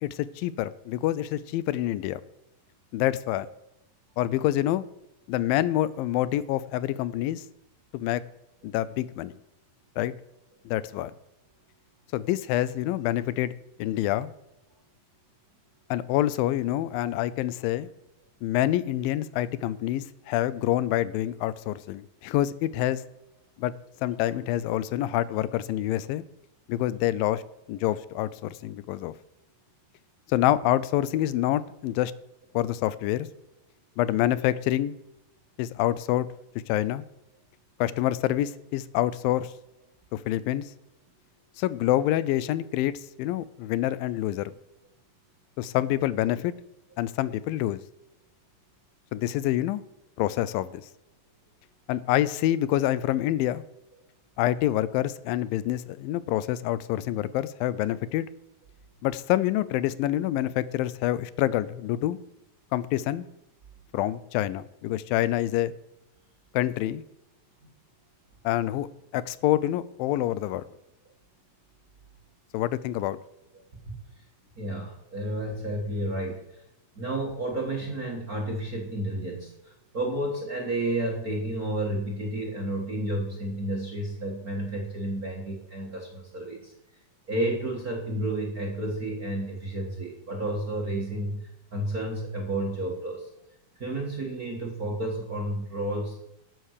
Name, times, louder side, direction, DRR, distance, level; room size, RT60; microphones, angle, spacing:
voice 1, 0.0-2.2 2.9-3.5 4.2-4.8 5.3-7.4 7.9-8.2 8.6-9.3 10.0-10.1 10.7-11.1 12.1-13.5 13.8-14.3 15.9-17.9 18.4-23.0 23.6-23.7 24.0-26.2 26.7-27.4 27.7-29.1 30.3-32.1 32.5-33.3 34.0-35.0 35.6-36.3 36.7-37.0 37.8-39.5 40.1-40.6 41.6-42.9 43.2-44.5 45.6-46.5 47.0-47.8 49.1-49.8 50.2-50.8 51.9-53.6 54.4-58.3 59.0-62.2 62.7-63.3 63.9-65.7 66.5-67.0 68.4-68.9 69.1-70.6 72.5-73.2, left 13 dB, 85° left, 17 dB, 2.4 m, -26 dB
voice 2, 74.5-76.6 76.9-86.7 87.3-93.3 93.7-96.2, right 1 dB, 40° right, 0 dB, 1.4 m, -31 dB
12.5 x 7.8 x 6.5 m, 0.84 s
omnidirectional pair, 4.0 m